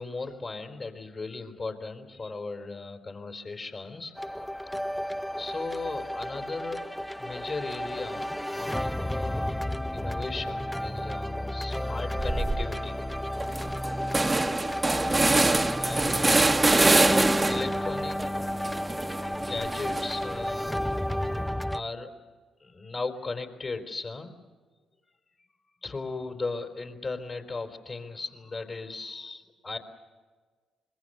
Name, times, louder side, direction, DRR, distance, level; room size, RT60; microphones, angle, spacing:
voice 1, 0.0-4.1 5.4-6.9 7.2-13.1 15.8-16.5 17.5-18.2 19.3-21.0 21.7-22.1 22.6-24.3 25.8-29.8, left 3 dB, 45° left, 4 dB, 4.2 m, -37 dB
sound 1, 4.2-21.8, equal, 5° left, 0.6 m, -32 dB
sound 2, 12.2-12.7 13.1-13.2 13.4-17.8 18.2-20.3, right 2 dB, 25° right, 1.1 m, -25 dB
25.5 x 22.0 x 7.0 m, 1.4 s
hypercardioid pair, 45°, 0 cm